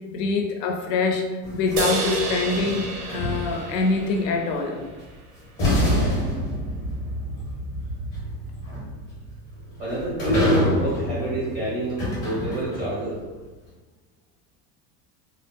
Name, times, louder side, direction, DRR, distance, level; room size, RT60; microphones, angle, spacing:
voice 1, 0.1-4.8, left 3 dB, 90° left, 3 dB, 0.7 m, -25 dB
sound 1, 1.4-3.8 5.0-5.1 5.6-13.1, left 1 dB, 20° left, 0.6 m, -27 dB
sound 2, 1.8-5.2, right 3 dB, 80° right, 0.6 m, -30 dB
voice 2, 9.8-13.2, right 1 dB, 25° right, -8 dB, 0.5 m, -28 dB
2.4 x 2.0 x 3.4 m, 1.2 s
cardioid pair, 175°, 46 cm